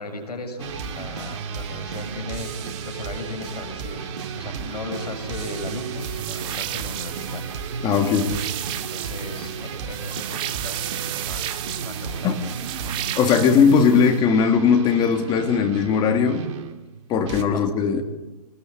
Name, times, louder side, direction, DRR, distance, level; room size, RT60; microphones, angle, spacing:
voice 1, 0.0-7.4 8.7-10.9 11.1-12.6 17.4-17.6, left 2 dB, 70° left, 6 dB, 6.7 m, -36 dB
sound 1, 0.6-17.4, right 6 dB, 45° right, 2.4 m, -33 dB
sound 2, 6.0-14.2, right 13 dB, 25° right, 1.2 m, -34 dB
voice 2, 7.8-8.4 12.2-12.3 13.2-16.6 17.1-18.0, left 6 dB, 20° left, 4 dB, 3.0 m, -19 dB
25.5 x 21.0 x 8.5 m, 1.0 s
figure-of-eight pair, 125°, 21 cm